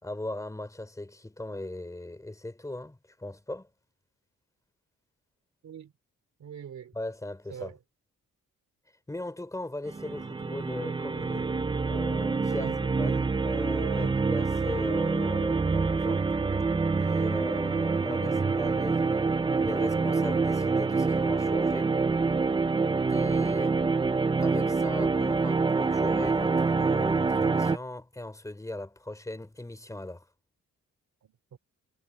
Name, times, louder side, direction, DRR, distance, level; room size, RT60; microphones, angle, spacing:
voice 1, 0.0-3.7 6.9-7.7 9.1-11.5 11.8-12.7 13.0-16.2 17.0-19.3 19.6-21.9 23.1-23.7 24.4-30.3, left 1 dB, 10° left, 3.1 m, -38 dB
voice 2, 6.4-6.9 7.5-7.8 12.5-12.8 13.9-14.2 31.2-31.6, right 8 dB, 60° right, 3.1 m, -42 dB
sound 1, 9.9-27.8, right 4 dB, 15° right, 0.5 m, -26 dB
cardioid pair, 135°, 31 cm